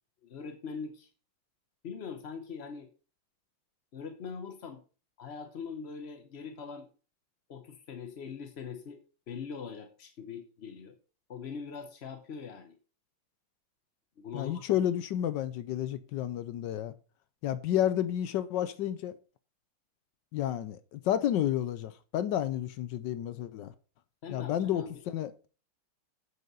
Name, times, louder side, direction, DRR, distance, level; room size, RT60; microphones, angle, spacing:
voice 1, 0.2-1.1 1.8-2.9 3.9-4.8 5.2-6.9 7.5-9.0 9.3-10.9 11.3-12.8 14.2-14.8 24.2-25.0, left 6 dB, 55° left, 0.7 m, -42 dB
voice 2, 14.3-16.9 17.4-19.1 20.3-23.7 24.3-25.3, left 11 dB, 70° left, 1.1 m, -31 dB
8.1 x 6.5 x 5.4 m
omnidirectional pair, 2.3 m